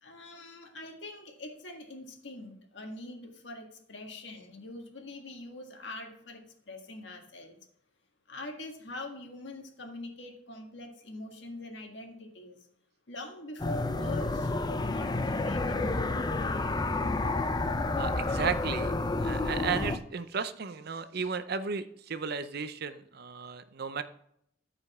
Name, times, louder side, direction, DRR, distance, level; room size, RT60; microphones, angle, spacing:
voice 1, 0.0-7.6 8.3-12.6 13.1-15.8, left 1 dB, 70° left, 3 dB, 1.7 m, -43 dB
sound 1, 13.6-20.0, left 2 dB, 20° left, 0.5 m, -30 dB
voice 2, 18.0-18.9 19.2-24.0, right 5 dB, 60° right, 12 dB, 0.6 m, -34 dB
14.0 x 5.1 x 3.6 m, 0.71 s
head